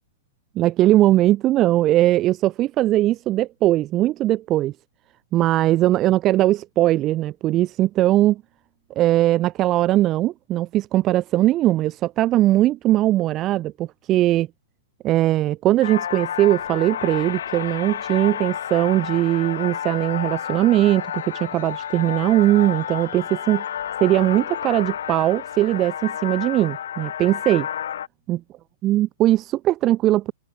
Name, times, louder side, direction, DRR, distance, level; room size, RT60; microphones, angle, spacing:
voice 1, 0.6-4.7 5.3-8.4 9.0-14.5 15.0-23.6 24.0-27.7 28.3-28.4 28.8-30.3, right 15 dB, 30° right, 0.4 m, -20 dB
sound 1, 15.8-28.1, left 9 dB, 70° left, 1.6 m, -31 dB
hypercardioid pair, 115°, 0 cm